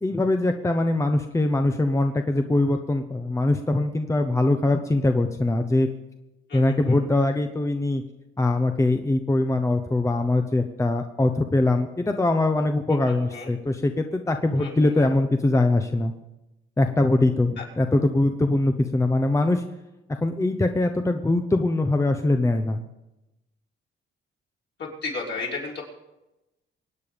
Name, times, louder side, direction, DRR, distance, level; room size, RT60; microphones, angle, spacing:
voice 1, 0.0-5.9 6.5-8.0 8.4-16.1 16.8-19.6 20.1-22.8, left 2 dB, 15° left, 6 dB, 0.9 m, -22 dB
voice 2, 6.5-7.0 12.9-13.5 14.6-15.1 17.6-17.7 24.8-25.8, left 3 dB, 60° left, -4 dB, 5.8 m, -34 dB
24.0 x 9.2 x 5.2 m, 0.96 s
cardioid pair, 100°, 21 cm